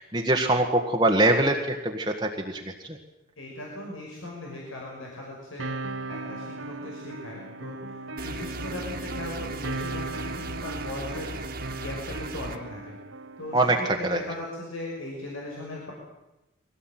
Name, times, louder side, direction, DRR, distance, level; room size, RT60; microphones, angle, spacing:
voice 1, 0.0-3.0 13.5-14.2, right 2 dB, 20° right, 1 dB, 1.6 m, -24 dB
voice 2, 3.4-5.7 6.1-7.8 8.1-12.9 13.4-15.9, left 2 dB, 85° left, -2 dB, 5.8 m, -38 dB
sound 1, 5.6-13.6, right 2 dB, 85° right, 1.6 m, -37 dB
sound 2, 8.2-12.6, right 2 dB, 45° right, 2.1 m, -37 dB
23.5 x 17.5 x 9.2 m, 0.98 s
head